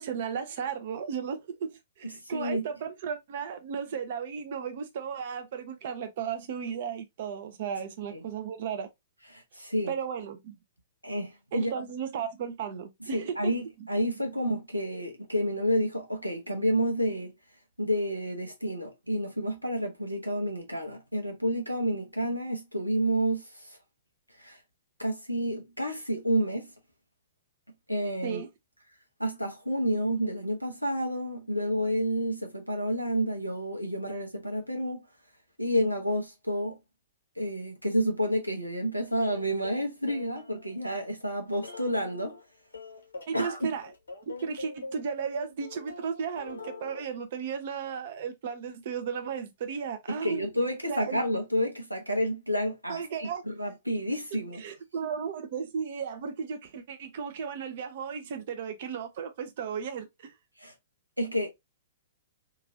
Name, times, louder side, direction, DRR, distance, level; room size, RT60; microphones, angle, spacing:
voice 1, 0.0-8.9 9.9-10.5 11.5-13.5 28.2-28.5 43.3-43.9 44.4-50.5 50.9-51.2 52.9-53.4 54.6-60.3, right 7 dB, 45° right, 0.6 m, -35 dB
voice 2, 2.0-2.6 8.1-8.2 9.3-9.9 11.0-11.7 13.0-17.3 17.8-23.8 24.4-24.6 25.0-26.7 27.9-28.4 29.2-35.0 35.6-36.8 37.4-42.4 43.3-43.7 50.1-54.6 60.6-60.7 61.2-61.5, equal, 90° right, 0.9 m, -30 dB
sound 1, 39.2-40.9 41.5-42.4 42.7-47.0, left 3 dB, 70° left, 0.8 m, -44 dB
2.9 x 2.5 x 2.6 m
figure-of-eight pair, 110°, 0 cm